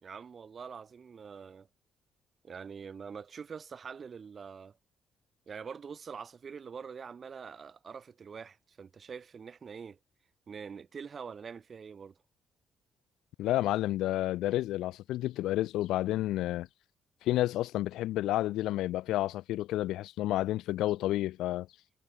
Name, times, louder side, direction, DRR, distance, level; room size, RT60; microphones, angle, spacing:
voice 1, 0.0-1.7 2.4-4.8 5.5-10.0 10.5-12.2, right 6 dB, 45° right, 5.3 m, -44 dB
voice 2, 13.4-16.7 17.2-21.7, left 15 dB, 90° left, 0.9 m, -30 dB
cardioid pair, 90°, 0 cm